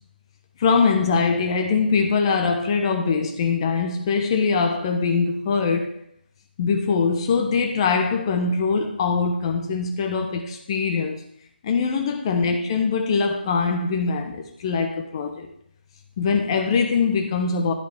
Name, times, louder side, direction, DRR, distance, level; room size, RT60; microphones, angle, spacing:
voice 1, 0.6-5.9 6.6-11.2 11.6-15.5 16.2-17.7, left 5 dB, 30° left, 1.2 m, -22 dB
11.5 x 7.3 x 3.7 m
figure-of-eight pair, 155°, 6 cm